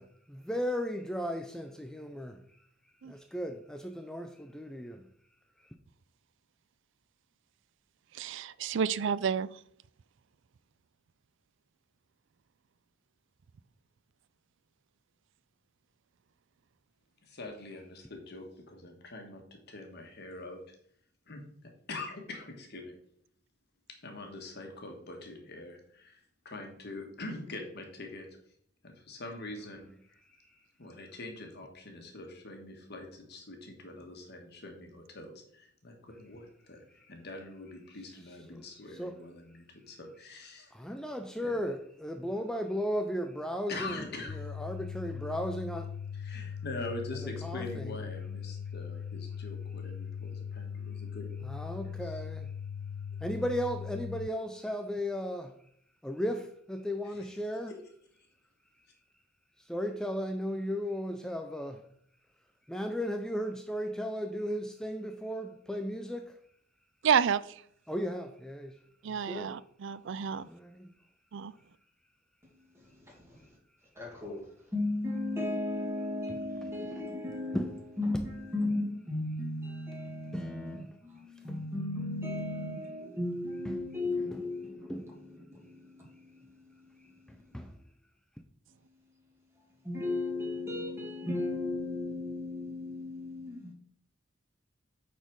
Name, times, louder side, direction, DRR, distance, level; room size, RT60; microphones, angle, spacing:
voice 1, 0.0-2.4 3.0-5.1 38.5-38.6 39.0-39.1 40.7-44.0 44.3-46.0 47.4-47.9 51.4-52.5 53.2-55.6 56.0-57.7 59.7-61.9 62.7-66.4 67.9-68.8 69.1-69.6 70.3-70.9 77.5-77.8 78.1-78.2 80.2-81.0 81.5-81.6 83.7-83.8 84.0-84.4 84.8-85.6 87.3-87.8, equal, 5° left, 0.4 m, -36 dB
voice 2, 8.1-9.5 67.0-67.4 69.0-70.5 71.3-71.5, right 7 dB, 65° right, 0.4 m, -29 dB
voice 3, 17.2-20.7 21.3-22.9 24.0-28.3 28.8-40.7 41.4-41.6 43.7-44.6 46.1-51.5 51.8-52.2 57.0-57.4 57.7-57.8, left 2 dB, 55° left, 1.6 m, -44 dB
sound 1, 44.3-54.3, left 7 dB, 85° left, 0.4 m, -40 dB
voice 4, 72.4-73.5 74.0-87.7 88.7-93.7, left 2 dB, 15° right, 2.4 m, -36 dB
9.0 x 4.3 x 4.7 m
head